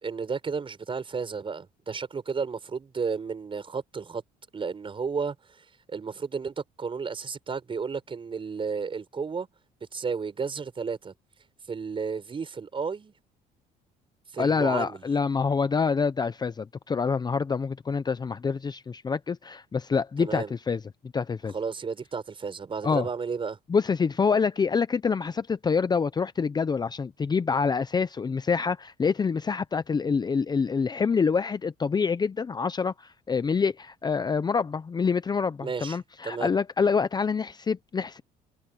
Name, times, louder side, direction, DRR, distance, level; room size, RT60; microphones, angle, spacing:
voice 1, 0.0-4.2 4.5-9.5 9.9-11.1 11.7-13.1 14.3-15.0 20.2-20.5 21.5-23.6 35.6-36.0 36.2-36.5, right 5 dB, 30° right, 5.7 m, -33 dB
voice 2, 14.4-20.8 21.1-21.5 22.8-23.1 23.7-38.2, left 5 dB, 25° left, 0.7 m, -26 dB
cardioid pair, 110°, 17 cm